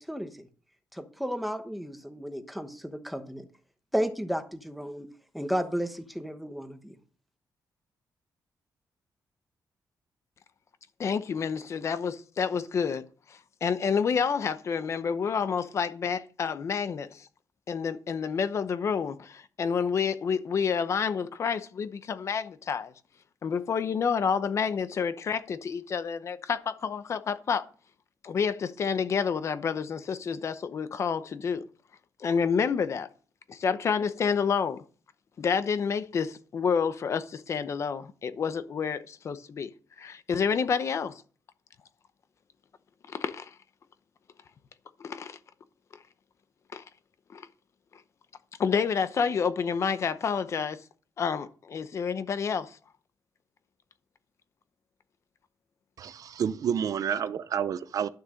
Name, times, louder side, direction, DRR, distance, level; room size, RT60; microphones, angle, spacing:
voice 1, 0.1-0.5 0.9-3.5 3.9-5.1 5.3-6.9, equal, ahead, 1.0 m, -33 dB
voice 2, 11.0-17.3 17.7-22.9 23.4-27.6 28.2-31.7 32.2-33.1 33.5-34.8 35.4-39.7 40.0-41.2 43.1-43.5 45.0-45.4 46.7-46.8 47.3-47.5 48.6-50.8 51.2-52.8, left 6 dB, 45° left, 0.8 m, -29 dB
voice 3, 56.0-58.1, right 8 dB, 55° right, 0.6 m, -29 dB
12.0 x 6.7 x 6.5 m
wide cardioid pair, 180°, 7 cm